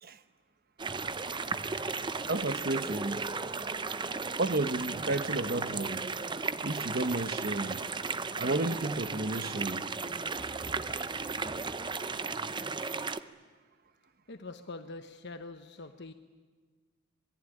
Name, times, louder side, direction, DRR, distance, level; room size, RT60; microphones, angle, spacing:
sound 1, 0.8-13.2, right 4 dB, 25° right, 0.8 m, -35 dB
voice 1, 2.3-3.2 4.4-6.1 6.6-7.8 8.4-9.9, right 2 dB, 50° right, 1.2 m, -32 dB
voice 2, 14.3-16.1, left 3 dB, 60° left, 1.1 m, -44 dB
26.5 x 22.0 x 10.0 m
head